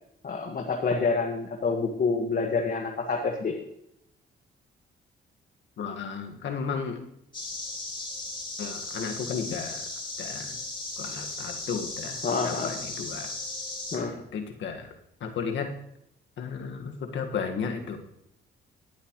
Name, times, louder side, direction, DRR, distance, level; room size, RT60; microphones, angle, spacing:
voice 1, 0.2-3.5 12.2-12.7 13.9-14.1, left 4 dB, 45° left, 1 dB, 1.7 m, -27 dB
voice 2, 5.8-7.0 8.6-9.8 10.2-10.6 11.0-13.3 13.9-14.9 15.2-15.7 16.4-18.0, left 6 dB, 70° left, 4 dB, 1.8 m, -34 dB
sound 1, 7.3-14.0, left 2 dB, 25° left, 3.9 m, -36 dB
18.0 x 8.2 x 3.2 m, 0.77 s
cardioid pair, 90°, 20 cm